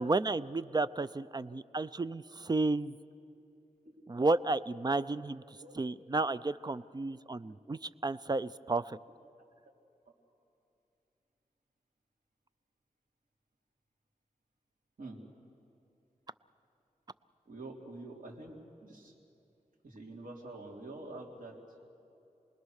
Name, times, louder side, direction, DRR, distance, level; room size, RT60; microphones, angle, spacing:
voice 1, 0.0-3.0 4.1-9.0, right 3 dB, 30° right, 15 dB, 0.5 m, -32 dB
voice 2, 17.5-19.1 19.8-21.6, right 2 dB, 75° right, 0 dB, 3.6 m, -46 dB
28.5 x 20.5 x 6.5 m, 2.8 s
wide cardioid pair, 85°, 14 cm